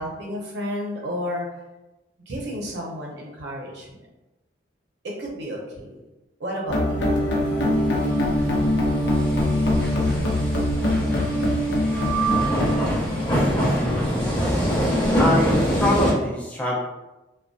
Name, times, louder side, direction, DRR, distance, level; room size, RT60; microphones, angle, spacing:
voice 1, 0.0-1.5 2.3-4.0 5.0-6.0 6.4-7.1, equal, 70° right, -3 dB, 0.6 m, -31 dB
sound 1, 6.7-12.8, left 1 dB, 70° left, 0.5 m, -22 dB
sound 2, 7.0-16.1, equal, 25° left, 0.8 m, -25 dB
voice 2, 13.8-14.4 15.2-16.8, left 1 dB, 10° left, -4 dB, 0.4 m, -25 dB
2.5 x 2.2 x 2.3 m, 1.0 s
head